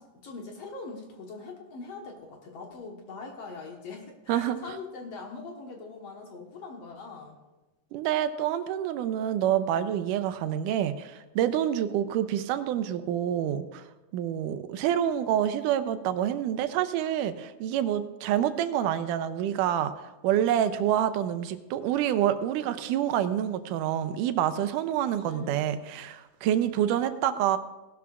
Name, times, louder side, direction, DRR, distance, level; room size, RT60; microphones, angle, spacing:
voice 1, 0.0-7.4 24.9-25.6, left 4 dB, 60° left, 1 dB, 2.0 m, -42 dB
voice 2, 7.9-13.9 14.1-19.9 20.2-27.6, right 10 dB, 85° right, 11 dB, 2.1 m, -27 dB
17.5 x 12.0 x 2.4 m, 1.1 s
omnidirectional pair, 3.7 m